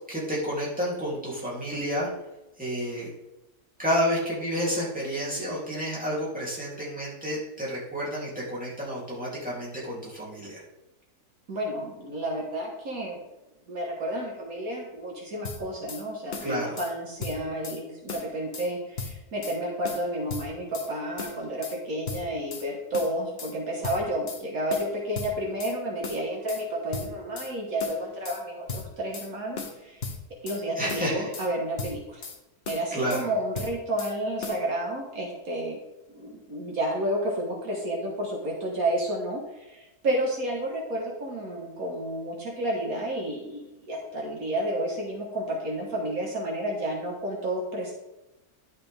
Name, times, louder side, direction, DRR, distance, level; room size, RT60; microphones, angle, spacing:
voice 1, 0.1-2.1 2.6-3.1 3.8-10.6 16.4-16.8 30.8-31.3 32.9-33.3, equal, 5° right, -7 dB, 3.2 m, -30 dB
voice 2, 11.5-13.2 13.7-30.0 30.4-32.2 32.7-35.8 36.1-47.9, right 1 dB, 65° right, -1 dB, 1.9 m, -31 dB
sound 1, 15.4-16.0 16.3-16.9 17.2-17.8 18.1-18.7 19.0-19.6 19.8-20.9 21.2-21.8 22.1-22.7 22.9-23.5 23.8-24.4 24.7-25.8 26.0-26.6 26.9-27.5 27.8-28.4 28.7-29.3 29.6-30.6 30.9-31.5 31.8-32.4 32.6-33.3 33.5-34.1 34.4-34.6, left 4 dB, 45° left, 1.1 m, -37 dB
11.0 x 6.7 x 3.6 m, 0.96 s
omnidirectional pair, 1.6 m